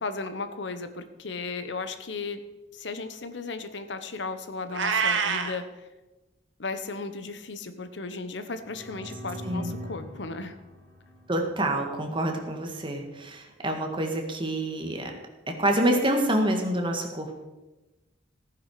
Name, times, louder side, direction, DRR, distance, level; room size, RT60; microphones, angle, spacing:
voice 1, 0.0-5.9 6.6-10.6, left 3 dB, 70° left, 10 dB, 1.0 m, -35 dB
Meow, 4.7-5.6, right 6 dB, 80° right, 1.3 m, -25 dB
sound 1, 8.5-12.2, equal, 50° right, 5.1 m, -42 dB
voice 2, 11.3-15.1 15.5-17.4, right 1 dB, 25° right, 3 dB, 1.8 m, -27 dB
15.5 x 9.7 x 4.9 m, 1.1 s
head